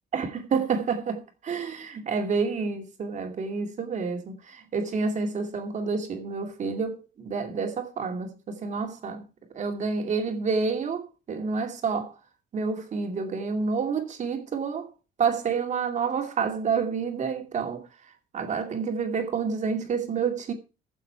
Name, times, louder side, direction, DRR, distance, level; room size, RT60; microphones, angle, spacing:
voice 1, 0.1-9.3 9.5-12.1 12.5-14.9 15.2-17.8 18.3-20.5, right 5 dB, 45° right, 2.5 m, -29 dB
15.5 x 7.2 x 4.6 m
cardioid pair, 110°, 17 cm